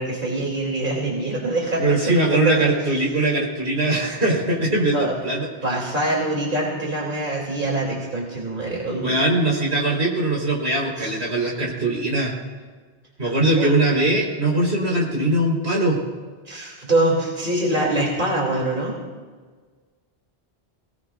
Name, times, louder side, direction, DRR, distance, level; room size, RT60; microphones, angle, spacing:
voice 1, 0.0-2.7 4.9-5.1 5.6-9.1 11.0-11.1 13.2-13.7 16.4-18.9, right 2 dB, 50° right, -3 dB, 3.2 m, -24 dB
voice 2, 1.8-5.5 9.0-12.3 13.2-16.0, right 2 dB, 90° right, -3 dB, 4.4 m, -21 dB
22.5 x 19.0 x 2.5 m, 1.4 s
omnidirectional pair, 1.1 m